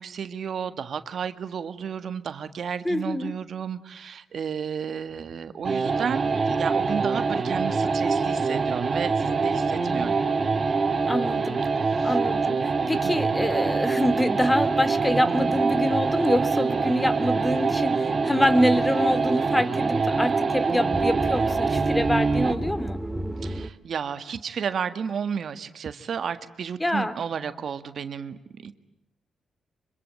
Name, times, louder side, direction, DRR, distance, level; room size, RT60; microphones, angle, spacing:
voice 1, 0.0-10.2 11.9-12.1 12.9-13.1 23.4-28.7, right 7 dB, 65° right, 11 dB, 1.6 m, -32 dB
voice 2, 2.8-3.3 11.1-11.6 12.0-23.0 26.8-27.1, left 1 dB, 10° left, 14 dB, 2.3 m, -25 dB
sound 1, 5.6-22.7, right 4 dB, 45° right, 3.8 m, -25 dB
sound 2, 13.2-23.7, right 1 dB, 10° right, 2.1 m, -35 dB
26.0 x 24.5 x 9.0 m, 0.86 s
cardioid pair, 65°, 0 cm